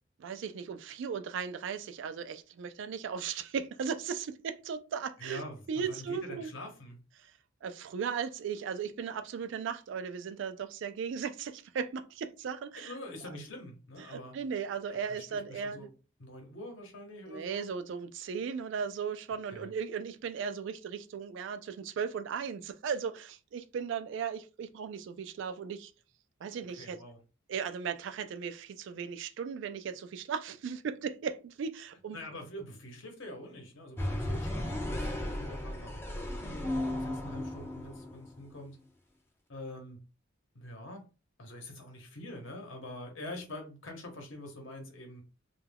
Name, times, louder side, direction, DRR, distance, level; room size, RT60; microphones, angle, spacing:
voice 1, 0.2-6.5 7.2-7.3 7.6-13.4 14.0-15.9 17.3-25.9 26.4-27.0 27.5-32.2, right 6 dB, 60° right, 0.3 m, -37 dB
voice 2, 5.2-7.0 12.8-14.4 14.9-15.9 16.2-17.7 19.5-19.7 26.6-27.2 32.1-36.7 37.0-38.8 39.5-40.0 40.5-41.1 41.4-45.2, left 1 dB, 65° left, 0.9 m, -45 dB
sound 1, 34.0-38.5, left 1 dB, 10° left, 0.4 m, -35 dB
2.2 x 2.2 x 3.3 m
head